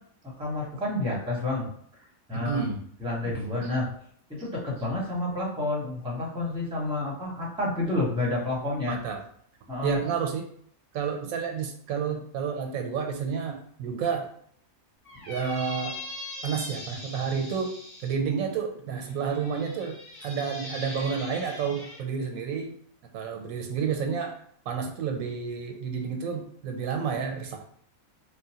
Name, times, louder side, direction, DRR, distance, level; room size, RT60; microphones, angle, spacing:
voice 1, 0.2-1.6 2.3-2.6 3.0-3.9 4.3-9.0 9.7-10.0, left 2 dB, 5° right, -4 dB, 0.7 m, -29 dB
voice 2, 2.3-2.8 3.2-3.3 3.6-3.7 8.9-9.2 9.8-10.5 10.9-14.3 15.3-15.9 16.4-22.8 23.1-27.6, right 6 dB, 90° right, 4 dB, 1.0 m, -30 dB
Squeak, 15.0-18.1 18.9-22.0, left 2 dB, 25° left, 1.0 m, -41 dB
3.1 x 2.1 x 2.8 m, 0.62 s
omnidirectional pair, 1.4 m